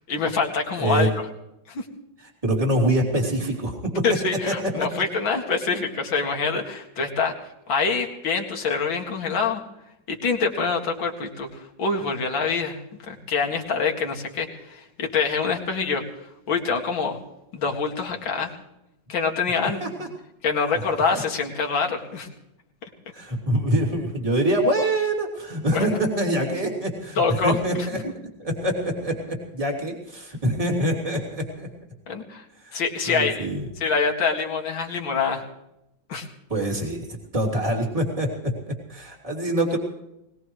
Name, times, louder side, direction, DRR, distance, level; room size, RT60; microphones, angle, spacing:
voice 1, 0.1-1.1 1.7-1.9 4.0-7.3 7.7-9.6 10.1-12.8 13.1-16.0 16.5-17.2 17.5-18.5 19.1-19.8 20.4-22.3 22.8-22.9 25.7-26.0 27.2-27.9 32.1-32.4 32.7-33.5 33.8-35.4 36.1-36.3, left 5 dB, 75° left, 1 dB, 2.7 m, -25 dB
voice 2, 0.8-1.1 2.4-4.0 4.5-4.6 19.8-20.1 20.7-20.8 21.1-21.2 23.1-28.0 28.4-31.7 32.6-33.6 36.5-39.8, right 1 dB, 15° right, 0 dB, 3.1 m, -25 dB
20.5 x 20.5 x 3.2 m, 0.87 s
omnidirectional pair, 2.2 m